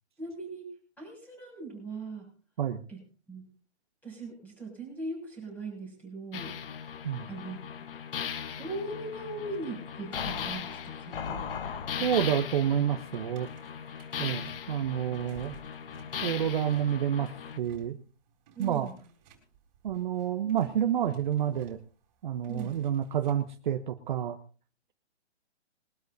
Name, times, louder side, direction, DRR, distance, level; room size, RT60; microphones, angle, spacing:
voice 1, 0.2-0.7 1.0-2.3 2.9-3.0 3.3-3.5 4.0-6.5 7.3-7.9 8.6-11.6 12.0-12.1 18.5-18.9 22.5-22.7, right 2 dB, 5° left, 0 dB, 6.5 m, -40 dB
sound 1, 6.3-17.6, left 7 dB, 55° left, 1.2 m, -38 dB
voice 2, 12.0-13.5 14.2-15.6 16.2-18.0 18.6-18.9 19.8-21.8 22.2-24.4, right 9 dB, 45° right, 7 dB, 1.0 m, -29 dB
sound 2, 13.1-23.6, right 5 dB, 25° right, 3.9 m, -57 dB
22.0 x 12.5 x 2.7 m, 0.38 s
hypercardioid pair, 155°, 34 cm